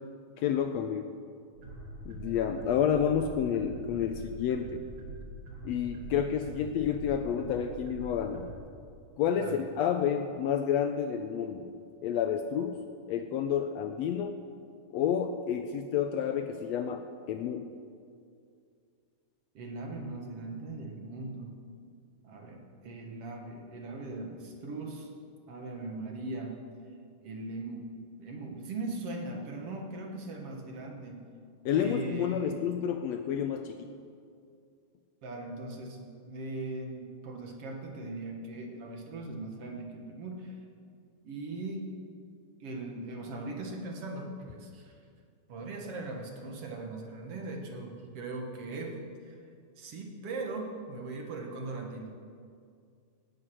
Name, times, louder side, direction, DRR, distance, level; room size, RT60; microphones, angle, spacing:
voice 1, 0.4-1.1 2.0-4.8 5.6-8.5 9.2-11.7 12.0-14.4 14.9-17.7 31.6-33.9, left 8 dB, 80° left, 7 dB, 1.6 m, -30 dB
sound 1, 1.5-8.5, right 1 dB, 80° right, 3.9 m, -44 dB
voice 2, 19.5-21.5 22.2-25.1 25.5-26.6 27.2-27.9 28.2-31.2 31.7-32.6 35.2-40.6 41.2-41.9 42.6-45.0 45.5-49.0 49.3-49.4 49.8-52.1, right 2 dB, 55° right, 1 dB, 2.3 m, -39 dB
17.5 x 8.0 x 6.2 m, 2.3 s
omnidirectional pair, 3.4 m